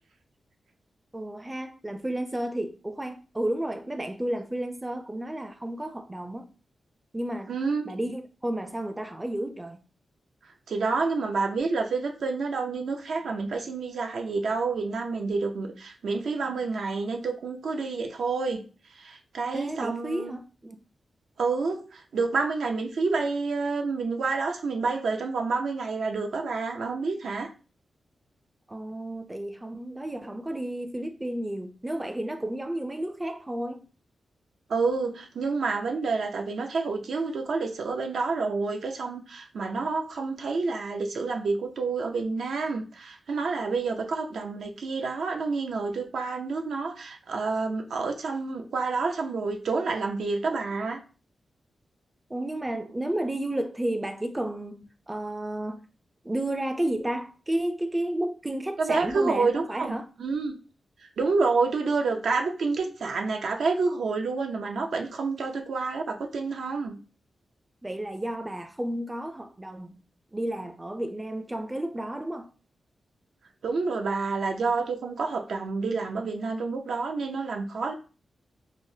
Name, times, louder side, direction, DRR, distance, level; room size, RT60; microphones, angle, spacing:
voice 1, 1.1-6.5 7.1-7.5 7.9-9.8 19.5-20.8 28.7-33.8 52.3-55.8 56.2-60.1 67.8-70.0 70.3-72.5, right 1 dB, 15° right, 0.4 m, -32 dB
voice 2, 7.5-7.9 10.7-18.6 19.0-20.3 21.4-27.5 34.7-51.0 58.8-60.6 61.2-67.0 73.6-77.9, right 4 dB, 80° right, 0.5 m, -28 dB
4.8 x 2.0 x 2.7 m
wide cardioid pair, 90°, 0 cm